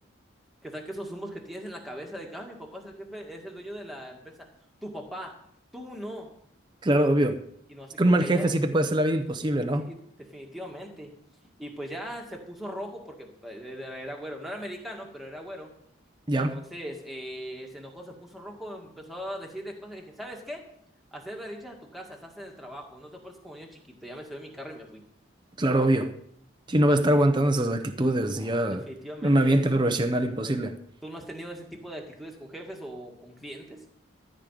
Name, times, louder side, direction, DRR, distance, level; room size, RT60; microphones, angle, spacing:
voice 1, 0.6-4.5 4.8-5.4 5.7-6.3 7.7-8.6 9.8-11.1 11.6-15.7 16.3-20.6 21.1-25.0 28.4-29.6 30.4-30.6 31.0-33.8, equal, ahead, 1.9 m, -40 dB
voice 2, 6.8-7.4 8.0-9.9 16.3-16.6 25.6-26.1 26.7-28.8 29.2-30.8, right 1 dB, 25° right, 0.7 m, -23 dB
14.0 x 5.2 x 9.2 m
head